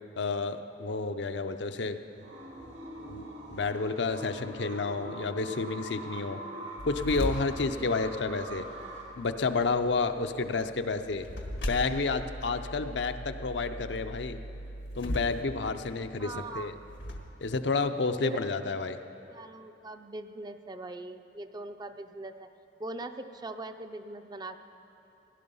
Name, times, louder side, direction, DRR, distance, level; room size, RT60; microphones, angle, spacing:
voice 1, 0.2-2.0 3.1-3.2 3.5-6.4 6.8-8.6 9.2-11.3 11.6-14.4 14.9-16.7 17.4-19.0, left 4 dB, 70° left, 7 dB, 0.6 m, -30 dB
sound 1, 2.1-9.0, right 1 dB, 90° right, 2.6 m, -43 dB
sound 2, 6.8-17.2, equal, 90° left, 1.5 m, -40 dB
voice 2, 16.2-16.7 18.2-18.4 19.3-22.5 22.8-24.6, right 2 dB, 25° right, 8 dB, 0.5 m, -41 dB
17.5 x 11.0 x 5.5 m, 2.8 s
head